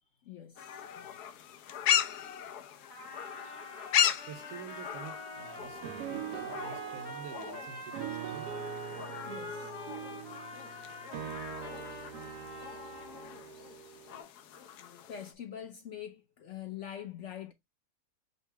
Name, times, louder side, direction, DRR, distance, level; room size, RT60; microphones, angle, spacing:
voice 1, 0.3-0.7 9.3-9.7 11.9-12.2 15.1-17.5, left 10 dB, 65° left, 0.8 m, -44 dB
sound 1, 0.6-15.3, left 10 dB, 85° left, 1.2 m, -37 dB
Trumpet, 2.9-13.3, left 1 dB, 25° left, 0.5 m, -47 dB
voice 2, 4.3-8.5, right 7 dB, 65° right, 1.0 m, -48 dB
sound 2, 5.6-14.2, right 8 dB, 85° right, 1.2 m, -43 dB
5.5 x 2.0 x 4.5 m
omnidirectional pair, 1.7 m